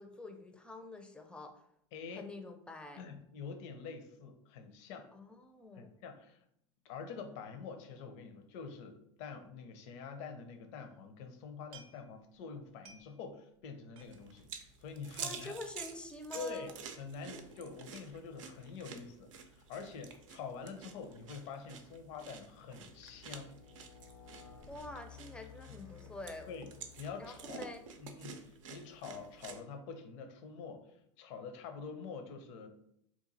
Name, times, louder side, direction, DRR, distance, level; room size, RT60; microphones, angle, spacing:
voice 1, 0.0-1.6 2.1-3.1 5.1-5.9 15.2-16.7 24.7-26.5 27.2-27.9, left 2 dB, 5° left, 5 dB, 0.4 m, -47 dB
voice 2, 1.9-2.3 3.0-5.1 5.7-6.4 6.8-14.5 14.8-15.5 16.3-16.7 17.0-23.5 25.7-25.8 26.5-26.7 27.0-27.7 28.0-32.7, left 5 dB, 65° left, 6 dB, 0.6 m, -46 dB
sound 1, 11.7-12.4 12.7-13.3 13.6-13.7 13.9-14.5 14.9-15.0 15.2-15.4 15.8-15.9 16.1-16.6 17.3-17.6 18.0-18.3 18.6-18.7, right 5 dB, 40° right, 0.6 m, -58 dB
sound 2, 14.0-29.6, right 6 dB, 85° right, 0.5 m, -50 dB
sound 3, 20.3-20.5 21.1-27.9, left 7 dB, 85° left, 0.9 m, -57 dB
2.9 x 2.4 x 3.9 m, 0.72 s
hypercardioid pair, 105°, 16 cm